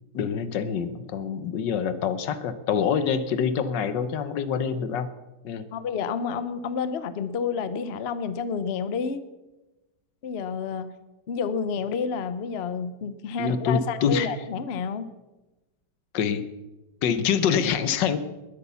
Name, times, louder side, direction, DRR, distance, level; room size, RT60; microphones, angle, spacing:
voice 1, 0.1-5.1 5.4-5.7 13.4-14.3 16.1-16.5 17.0-18.2, left 7 dB, 80° left, 13 dB, 1.6 m, -25 dB
voice 2, 5.7-9.2 10.2-10.9 11.3-15.1, left 6 dB, 50° left, 13 dB, 0.8 m, -29 dB
20.5 x 8.3 x 6.9 m, 1.1 s
omnidirectional pair, 1.9 m